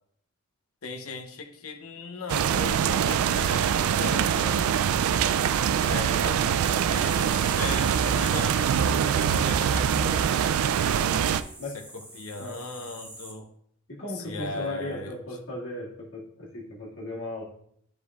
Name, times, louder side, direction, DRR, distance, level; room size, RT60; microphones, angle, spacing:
voice 1, 0.8-4.7 5.7-10.5 11.7-11.8 12.1-13.5 14.1-15.1, left 3 dB, 85° left, 5 dB, 0.8 m, -38 dB
sound 1, 2.3-11.4, right 8 dB, 80° right, 0.3 m, -24 dB
sound 2, 6.9-13.3, right 1 dB, 10° right, 1.1 m, -44 dB
voice 2, 14.0-17.4, left 2 dB, 60° left, -5 dB, 2.1 m, -36 dB
10.0 x 5.2 x 2.4 m, 0.69 s
head